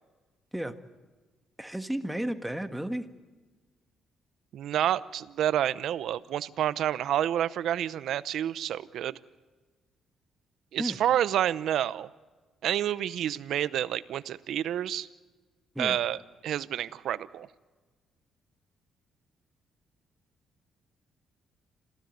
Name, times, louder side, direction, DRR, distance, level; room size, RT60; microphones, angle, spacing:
voice 1, 1.6-3.1 10.8-11.0 15.7-16.0, right 1 dB, 5° right, 8 dB, 1.6 m, -33 dB
voice 2, 4.5-9.2 10.7-12.1 12.6-15.1 15.8-17.5, right 11 dB, 75° right, 16 dB, 0.8 m, -29 dB
27.0 x 16.0 x 9.3 m, 1.3 s
cardioid pair, 90°, 0 cm